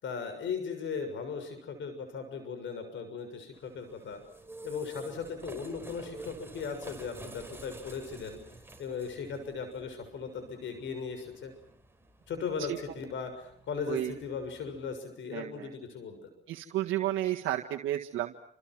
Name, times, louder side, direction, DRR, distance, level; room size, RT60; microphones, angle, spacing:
voice 1, 0.0-4.2 4.6-8.4 8.8-11.5 12.3-16.3, left 5 dB, 70° left, 9 dB, 6.6 m, -38 dB
sound 1, 3.5-15.0, right 2 dB, 10° right, 4.8 m, -50 dB
voice 2, 15.3-15.7 16.5-18.4, right 13 dB, 85° right, 2 dB, 1.8 m, -32 dB
29.5 x 27.0 x 6.2 m, 0.69 s
cardioid pair, 90°, 20 cm